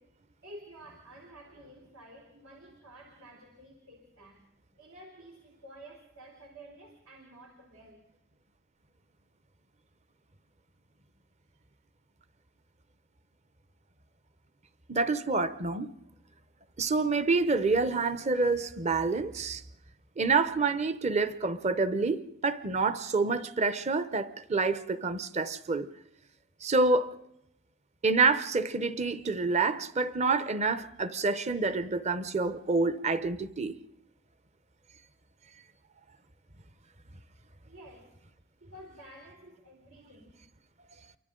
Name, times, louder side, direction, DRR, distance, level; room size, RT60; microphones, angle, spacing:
voice 1, 0.0-4.5 4.7-8.1 37.6-38.2 38.6-40.4, right 1 dB, 80° right, 3.3 m, -51 dB
voice 2, 14.9-15.9 16.8-19.6 20.2-25.9 26.6-27.2 28.0-33.7, right 3 dB, 30° right, 0.7 m, -27 dB
28.5 x 24.0 x 3.8 m
head